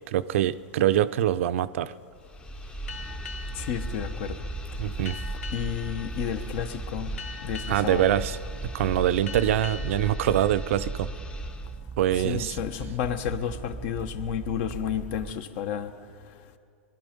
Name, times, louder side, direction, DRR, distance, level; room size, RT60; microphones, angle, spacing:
voice 1, 0.1-1.9 4.8-5.2 7.7-8.4 8.7-11.1 12.0-12.6, right 12 dB, 65° right, 13 dB, 0.5 m, -24 dB
sound 1, 2.1-11.8, equal, 10° left, 0.8 m, -37 dB
sound 2, 2.9-12.0, left 5 dB, 80° left, 1.0 m, -44 dB
sound 3, 2.9-15.3, right 5 dB, 15° right, 0.3 m, -41 dB
voice 2, 3.5-4.4 5.5-7.1 7.4-8.1 12.2-15.9, left 9 dB, 55° left, 10 dB, 1.1 m, -31 dB
22.0 x 12.0 x 5.3 m, 2.4 s
hypercardioid pair, 120°, 7 cm